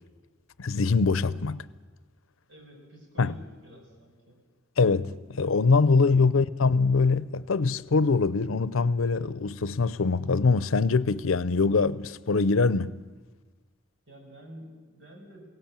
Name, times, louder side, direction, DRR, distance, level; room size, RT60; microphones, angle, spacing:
voice 1, 0.6-1.6 3.2-3.3 4.8-13.0, left 4 dB, 85° left, 0.6 m, -23 dB
voice 2, 2.5-4.4 14.1-15.5, equal, 60° right, 6.2 m, -49 dB
22.0 x 17.5 x 8.9 m
head